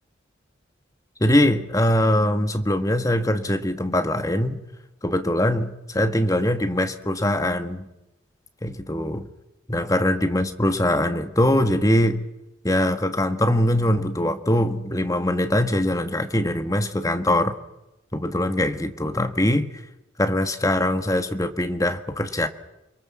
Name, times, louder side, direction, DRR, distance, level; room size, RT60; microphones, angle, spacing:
voice 1, 1.2-4.6 5.0-7.9 8.6-9.3 9.7-12.3 12.6-17.5 18.1-19.7 20.2-22.5, left 1 dB, 15° left, 8 dB, 1.5 m, -22 dB
29.0 x 23.0 x 7.5 m, 0.94 s
head